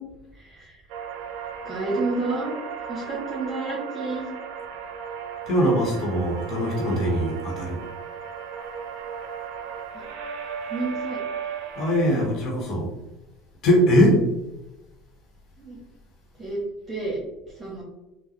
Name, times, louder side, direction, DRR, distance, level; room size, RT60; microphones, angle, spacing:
voice 1, 0.4-0.8 1.6-2.6 2.9-4.3 9.9-10.0 10.7-11.2 15.6-15.8 16.4-16.6 16.9-17.2 17.6-17.8, right 2 dB, 25° right, -5 dB, 1.3 m, -30 dB
sound 1, 0.9-12.3, right 7 dB, 75° right, 0.4 m, -35 dB
voice 2, 5.5-7.8 11.8-12.9 13.6-14.2, equal, 55° left, -1 dB, 1.1 m, -21 dB
3.8 x 2.2 x 2.9 m, 0.97 s
supercardioid pair, 85°, 0 cm